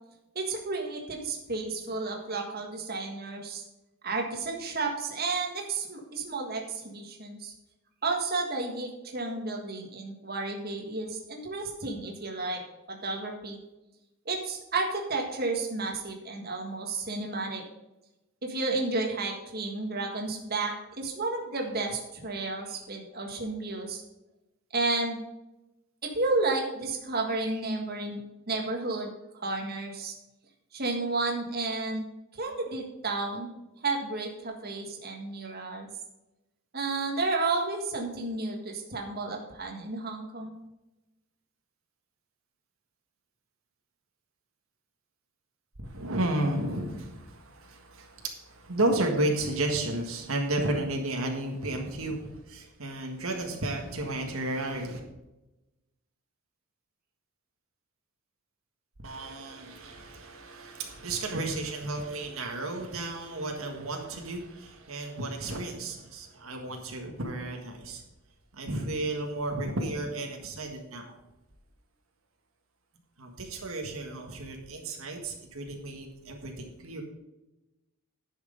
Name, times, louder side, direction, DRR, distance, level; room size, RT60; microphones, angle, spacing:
voice 1, 0.3-3.6 4.0-7.5 8.0-12.6 12.9-13.6 14.2-17.6 18.4-24.0 24.7-25.2 26.0-30.1 30.7-32.0 32.3-33.5 33.8-35.9 36.7-40.5, right 3 dB, 45° right, 1 dB, 1.7 m, -32 dB
voice 2, 45.8-55.0 59.0-68.0 68.5-71.1 73.2-77.0, right 2 dB, 75° right, 2 dB, 1.7 m, -33 dB
10.5 x 6.4 x 5.2 m, 0.99 s
head